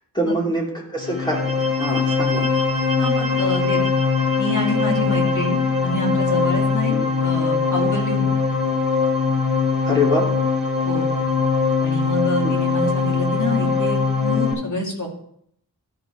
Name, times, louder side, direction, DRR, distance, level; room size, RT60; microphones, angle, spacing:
voice 1, 0.1-2.5 6.9-7.1 9.9-10.3 12.4-12.5, left 1 dB, 10° left, -3 dB, 2.9 m, -24 dB
sound 1, 1.0-14.5, left 5 dB, 35° left, 3.0 m, -21 dB
voice 2, 3.0-3.8 4.4-6.9 7.2-8.2 10.8-11.1 11.8-15.1, left 1 dB, 55° left, -1 dB, 2.5 m, -26 dB
13.0 x 4.9 x 4.7 m, 0.69 s
wide cardioid pair, 85°, 37 cm